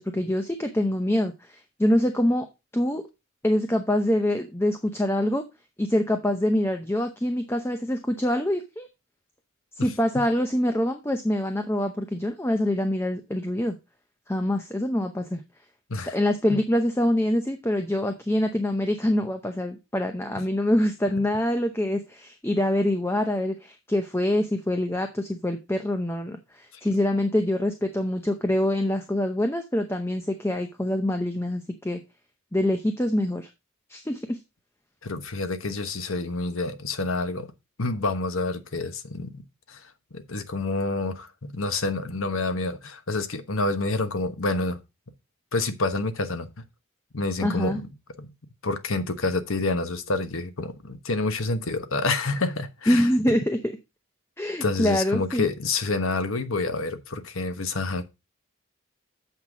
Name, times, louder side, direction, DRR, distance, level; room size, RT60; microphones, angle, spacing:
voice 1, 0.0-2.5 2.7-3.0 3.4-5.4 5.8-8.9 9.8-13.8 14.3-15.4 16.1-32.0 32.5-33.5 33.9-34.4 47.4-47.8 52.9-53.6 54.4-55.5, left 1 dB, 10° left, 0.7 m, -25 dB
voice 2, 35.0-37.5 37.8-44.8 45.5-46.5 47.1-47.9 48.2-48.3 48.6-53.4 54.6-58.0, left 3 dB, 75° left, 1.2 m, -28 dB
7.8 x 5.8 x 4.9 m
head